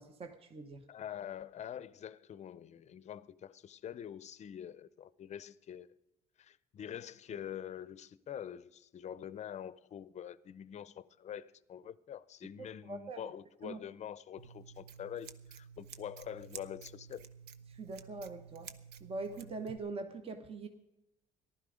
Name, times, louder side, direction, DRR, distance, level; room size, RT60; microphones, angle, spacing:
voice 1, 0.0-0.8 12.6-13.3 13.6-13.8 17.7-18.7 19.0-20.7, right 3 dB, 35° right, 1.0 m, -43 dB
voice 2, 0.9-5.9 6.4-17.2, left 9 dB, 40° left, 0.6 m, -45 dB
Scissors, 14.4-19.8, right 7 dB, 80° right, 0.8 m, -52 dB
15.0 x 11.5 x 5.0 m
cardioid pair, 110°, 17 cm